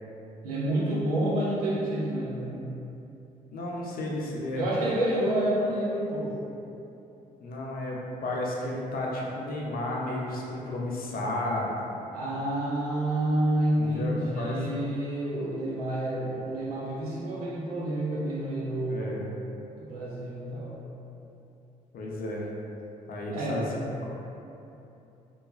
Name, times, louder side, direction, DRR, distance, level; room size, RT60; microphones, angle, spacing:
voice 1, 0.4-2.7 4.5-6.4 12.1-19.2 19.8-20.8 23.3-23.9, right 1 dB, 90° right, -5 dB, 0.5 m, -29 dB
voice 2, 3.5-4.6 7.4-11.8 13.8-14.5 18.9-19.2 21.9-22.5 23.1-23.6, left 1 dB, 50° left, -3 dB, 0.6 m, -32 dB
3.2 x 2.3 x 2.3 m, 2.8 s
hypercardioid pair, 45°, 19 cm